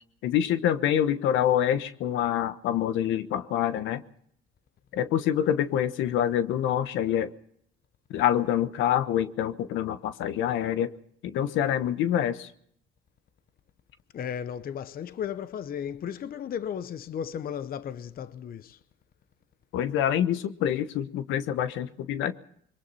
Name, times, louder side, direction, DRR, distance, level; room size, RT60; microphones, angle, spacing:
voice 1, 0.2-4.0 4.9-7.3 8.1-10.9 11.2-12.5 19.7-22.3, left 10 dB, 80° left, 1.2 m, -26 dB
voice 2, 14.1-18.8, left 8 dB, 50° left, 0.8 m, -35 dB
29.0 x 22.5 x 4.2 m
cardioid pair, 90°, 20 cm